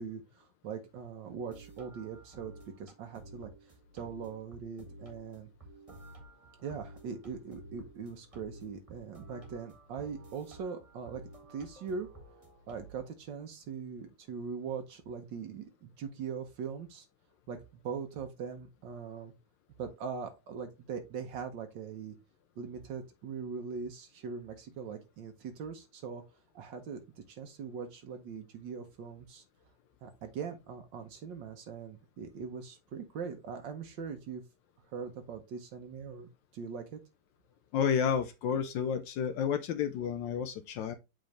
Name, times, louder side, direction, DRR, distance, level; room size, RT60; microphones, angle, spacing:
voice 1, 0.0-3.5 3.9-5.5 6.6-11.2 11.5-12.1 12.7-17.0 17.5-19.3 19.8-22.2 22.6-26.2 26.5-29.4 30.0-34.4 34.9-37.0, right 6 dB, 80° right, 1.6 m, -41 dB
sound 1, 1.2-13.0, right 1 dB, 20° right, 1.6 m, -52 dB
voice 2, 37.7-40.9, left 7 dB, 80° left, 1.3 m, -31 dB
7.9 x 3.8 x 3.2 m
omnidirectional pair, 2.0 m